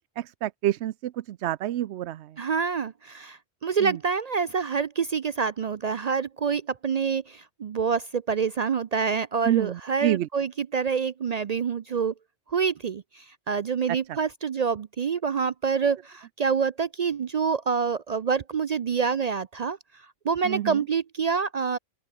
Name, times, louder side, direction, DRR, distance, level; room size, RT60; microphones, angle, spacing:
voice 1, 0.2-2.4 3.8-4.0 9.4-10.3 20.4-20.8, right 13 dB, 90° right, 0.9 m, -28 dB
voice 2, 2.4-12.1 12.5-19.8 20.2-21.8, right 6 dB, 50° right, 0.5 m, -27 dB
open air
omnidirectional pair, 1.1 m